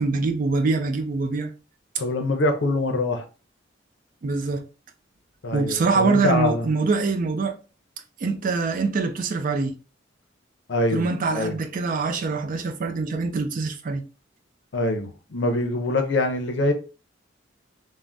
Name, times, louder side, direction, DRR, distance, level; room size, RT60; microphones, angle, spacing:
voice 1, 0.0-1.5 4.2-4.7 5.5-7.5 8.2-9.8 10.9-14.0, right 4 dB, 45° right, 0.4 m, -24 dB
voice 2, 2.0-3.2 5.4-6.7 10.7-11.5 14.7-16.7, left 2 dB, 65° left, 0.6 m, -24 dB
3.3 x 2.1 x 2.5 m
head